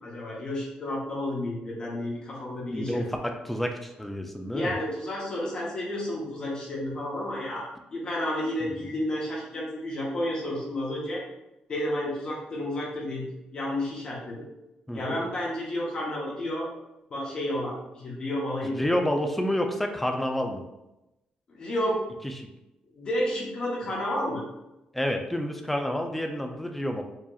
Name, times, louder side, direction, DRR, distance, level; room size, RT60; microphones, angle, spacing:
voice 1, 0.0-3.1 4.5-11.2 11.7-14.5 14.9-16.7 17.1-19.0 21.5-22.0 22.9-24.4, left 1 dB, 35° left, -4 dB, 0.8 m, -31 dB
voice 2, 2.7-4.7 8.6-8.7 14.9-15.3 18.6-20.6 22.2-22.5 24.9-27.0, equal, 5° left, 4 dB, 0.4 m, -29 dB
4.7 x 2.8 x 2.4 m, 0.93 s
cardioid pair, 165°, 3 cm